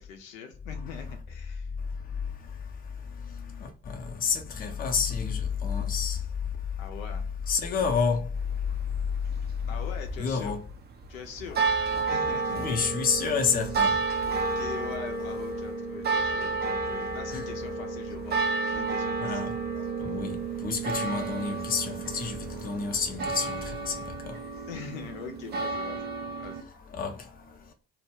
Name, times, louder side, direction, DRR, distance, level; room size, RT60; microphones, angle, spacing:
voice 1, 0.0-1.7 6.8-7.3 9.7-10.5 11.1-11.6 12.1-12.6 14.3-19.5 24.7-26.1 26.4-26.6, left 7 dB, 75° left, 0.6 m, -42 dB
voice 2, 1.8-6.8 7.5-9.7 10.2-10.6 11.5-12.2 12.5-14.7 16.3-16.4 16.8-17.5 18.7-24.5 26.6-27.7, left 5 dB, 20° left, 0.6 m, -31 dB
sound 1, 8.4-26.6, right 4 dB, 25° right, 0.4 m, -31 dB
2.1 x 2.0 x 3.2 m
figure-of-eight pair, 50°, 41 cm